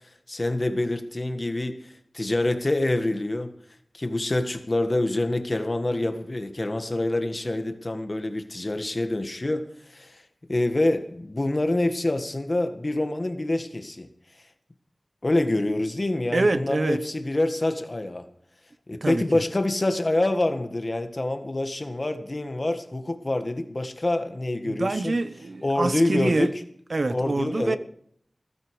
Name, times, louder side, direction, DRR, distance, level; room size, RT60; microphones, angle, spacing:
voice 1, 0.3-3.5 3.9-10.2 10.5-14.1 15.2-18.2 18.9-25.2 25.6-26.5 27.1-27.8, left 2 dB, 40° left, 1.7 m, -26 dB
voice 2, 16.3-17.0 19.0-19.2 24.6-26.5 26.9-27.8, right 2 dB, 65° right, 0.9 m, -25 dB
17.0 x 15.0 x 4.9 m
wide cardioid pair, 55°, 0 cm